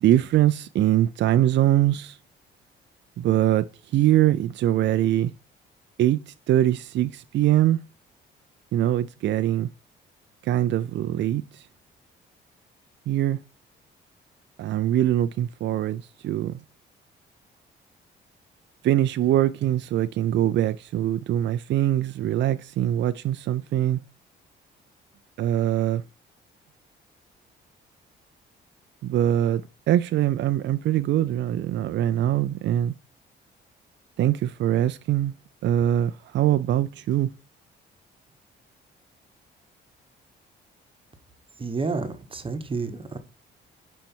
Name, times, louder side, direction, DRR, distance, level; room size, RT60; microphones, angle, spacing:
voice 1, 0.0-2.2 3.2-3.7 3.9-5.3 6.0-7.8 8.7-9.7 10.4-11.4 13.1-13.4 14.6-16.5 18.8-24.0 25.4-26.0 29.0-29.6 29.9-32.9 34.2-35.3 35.6-37.3, right 12 dB, 65° right, 0.4 m, -22 dB
voice 2, 41.6-43.2, right 4 dB, 25° right, 1.1 m, -30 dB
5.3 x 4.5 x 4.4 m
cardioid pair, 90°, 20 cm